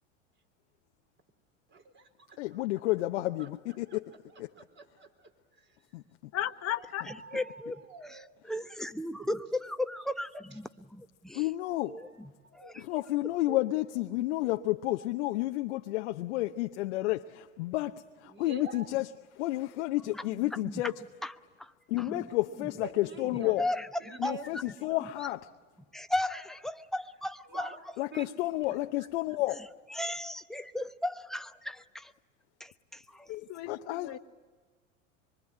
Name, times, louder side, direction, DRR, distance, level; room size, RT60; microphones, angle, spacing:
voice 1, 1.7-2.4 3.4-4.0 4.3-5.3 5.6-5.8 6.7-8.3 12.0-12.1 12.4-13.0 18.2-18.9 22.8-23.6 24.0-24.5 24.9-25.0 27.5-27.8 28.1-28.3 29.0-29.1, right 3 dB, 30° right, 4.3 m, -47 dB
voice 2, 2.4-4.1 4.4-4.5 5.9-6.0 11.3-12.0 12.8-19.1 19.4-20.9 21.9-23.6 24.2-25.5 28.0-29.7 33.7-34.1, left 17 dB, 65° left, 0.9 m, -31 dB
voice 3, 6.3-7.4 33.3-34.2, left 13 dB, 40° left, 1.3 m, -36 dB
voice 4, 7.3-7.8 8.5-11.5 11.8-12.8 13.5-13.6 20.1-20.7 21.2-21.3 21.6-22.3 22.6-22.7 23.6-24.4 25.2-25.3 25.9-27.7 29.5-32.1 32.6-33.3, left 1 dB, ahead, 0.9 m, -36 dB
25.0 x 24.0 x 9.8 m
hypercardioid pair, 85°, 38 cm